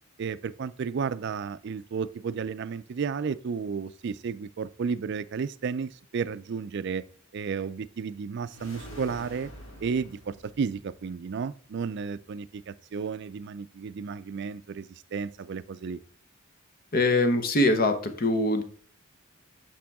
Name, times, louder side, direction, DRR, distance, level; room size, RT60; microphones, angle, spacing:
voice 1, 0.2-7.0 7.3-9.5 9.8-16.0, right 5 dB, 55° right, 0.4 m, -33 dB
sound 1, 8.4-11.0, equal, 85° left, 3.7 m, -46 dB
voice 2, 16.9-18.6, left 2 dB, 45° left, 1.0 m, -23 dB
8.7 x 6.1 x 3.5 m
head